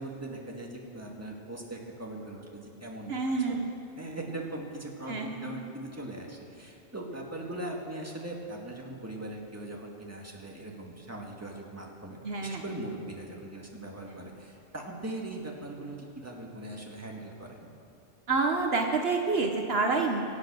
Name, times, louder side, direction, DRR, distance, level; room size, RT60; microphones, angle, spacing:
voice 1, 0.0-3.1 3.5-3.6 4.0-17.7, right 1 dB, 15° right, -1 dB, 1.8 m, -40 dB
voice 2, 3.1-3.7 5.1-5.7 12.2-12.6 14.1-14.2 18.3-20.2, right 3 dB, 65° right, 2 dB, 1.2 m, -28 dB
24.0 x 8.5 x 6.2 m, 2.6 s
omnidirectional pair, 1.2 m